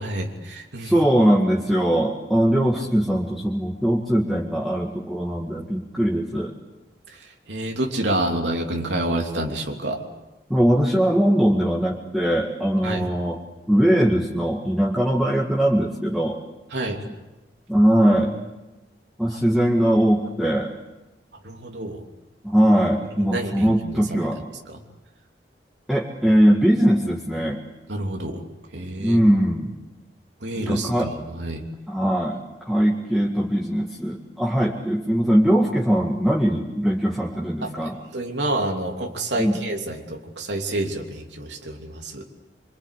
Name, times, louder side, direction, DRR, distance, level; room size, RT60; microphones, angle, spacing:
voice 1, 0.0-0.9 7.1-10.0 12.8-13.1 16.7-17.0 19.3-19.4 21.4-22.0 23.1-24.2 24.7-24.8 27.9-28.4 28.7-29.2 30.4-31.6 37.6-42.2, right 1 dB, 85° right, 2 dB, 3.1 m, -28 dB
voice 2, 0.8-6.5 10.5-13.4 13.7-16.4 17.7-18.3 19.2-20.7 22.4-24.4 25.9-27.6 29.0-29.7 30.6-31.1 31.9-38.0 39.4-39.6, equal, ahead, -3 dB, 2.0 m, -21 dB
25.5 x 24.5 x 8.5 m, 1.1 s
head